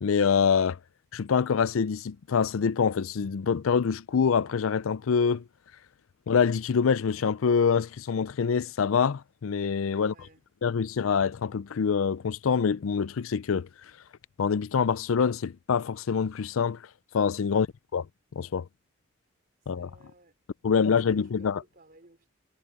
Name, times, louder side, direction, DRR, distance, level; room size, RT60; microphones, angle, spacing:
voice 1, 0.0-0.8 1.1-5.4 6.3-10.1 10.6-13.7 14.4-16.8 17.1-17.7 17.9-18.1 18.3-18.7 19.7-19.9 20.6-21.6, left 6 dB, 90° left, 0.5 m, -25 dB
voice 2, 10.0-10.4 19.6-20.3 20.7-22.3, right 2 dB, 45° right, 4.1 m, -58 dB
head